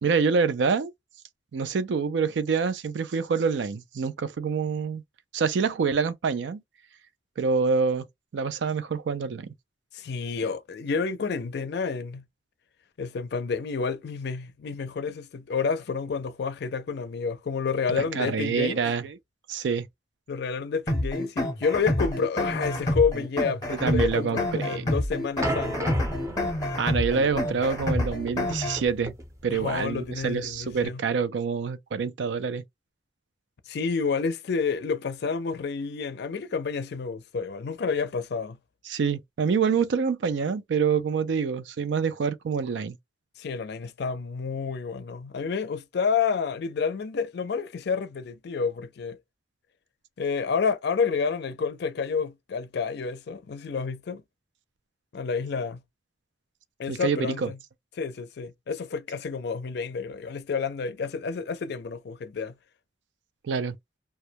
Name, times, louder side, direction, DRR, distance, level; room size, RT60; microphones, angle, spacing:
voice 1, 0.0-0.9 1.5-5.0 5.3-6.6 7.4-8.0 8.3-9.5 17.9-19.2 19.5-19.9 23.8-24.9 26.8-29.1 29.4-32.6 38.9-43.0 56.9-57.5 63.4-63.8, right 5 dB, 80° right, 0.4 m, -26 dB
voice 2, 9.9-12.2 13.0-18.8 20.3-26.0 29.5-31.0 33.7-38.6 43.4-49.2 50.2-54.2 55.1-55.8 56.8-57.6 58.0-62.5, left 5 dB, 65° left, 0.4 m, -29 dB
sound 1, 20.9-28.9, left 1 dB, 20° left, 0.7 m, -28 dB
sound 2, 25.4-30.8, right 1 dB, 20° right, 0.5 m, -36 dB
2.2 x 2.1 x 2.7 m
head